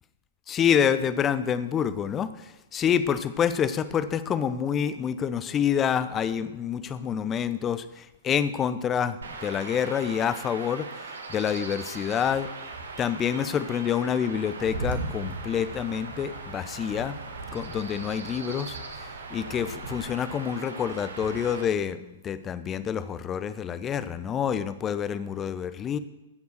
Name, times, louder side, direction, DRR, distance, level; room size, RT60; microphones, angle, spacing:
voice 1, 0.5-12.5 13.0-17.2 17.5-26.0, left 8 dB, 20° left, 13 dB, 0.8 m, -27 dB
Chirp tweet / Wind / Stream, 9.2-21.6, right 3 dB, 70° right, 1.9 m, -38 dB
16.0 x 7.2 x 6.6 m, 1.0 s
figure-of-eight pair, 110°, 0 cm